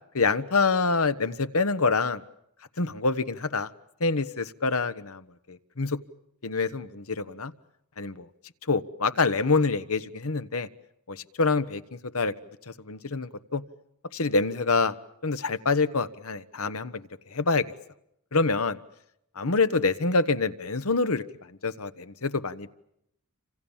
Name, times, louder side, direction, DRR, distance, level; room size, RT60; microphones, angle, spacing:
voice 1, 0.1-2.2 2.8-3.7 4.0-6.0 6.4-7.5 8.0-8.3 8.7-10.7 11.1-12.3 12.7-13.6 14.1-14.9 15.2-17.0 17.3-17.6 18.3-18.8 19.4-21.2 21.6-22.7, left 4 dB, 70° left, 12 dB, 1.3 m, -26 dB
28.5 x 26.5 x 7.3 m, 0.78 s
head